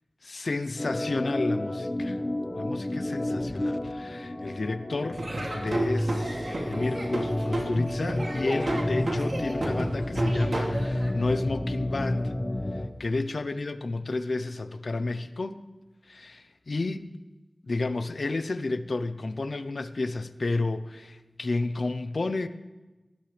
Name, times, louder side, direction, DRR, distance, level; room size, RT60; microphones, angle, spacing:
voice 1, 0.2-2.2 2.5-5.2 5.5-12.3 12.7-15.6 16.1-17.1 17.6-22.5, left 3 dB, 75° left, 11 dB, 0.7 m, -31 dB
Organ, 0.8-12.9, left 1 dB, 35° left, 1.0 m, -31 dB
Laughter / Drum, 5.1-11.1, right 1 dB, 65° right, 2.6 m, -30 dB
18.5 x 14.5 x 3.4 m, 1.1 s
wide cardioid pair, 65°, 0 cm